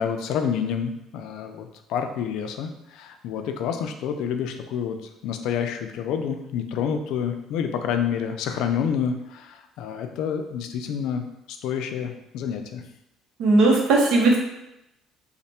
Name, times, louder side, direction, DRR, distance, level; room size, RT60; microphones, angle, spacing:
voice 1, 0.0-5.0 5.2-12.8, left 7 dB, 65° left, 6 dB, 0.3 m, -28 dB
voice 2, 13.4-14.4, right 2 dB, 75° right, 0 dB, 0.8 m, -17 dB
3.2 x 2.1 x 4.1 m, 0.88 s
cardioid pair, 180°, 0 cm